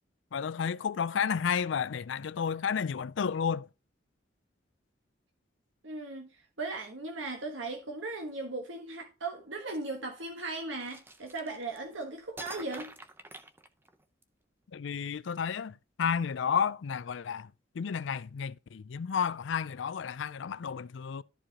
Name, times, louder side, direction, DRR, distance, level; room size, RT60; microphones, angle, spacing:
voice 1, 0.3-3.7 14.7-17.5 17.8-21.2, left 7 dB, 70° left, 0.4 m, -32 dB
voice 2, 5.8-6.3 6.6-12.9, right 3 dB, 80° right, 1.4 m, -37 dB
sound 1, 10.8-11.9 12.4-14.2, right 2 dB, 10° right, 0.7 m, -47 dB
13.5 x 4.8 x 2.9 m
head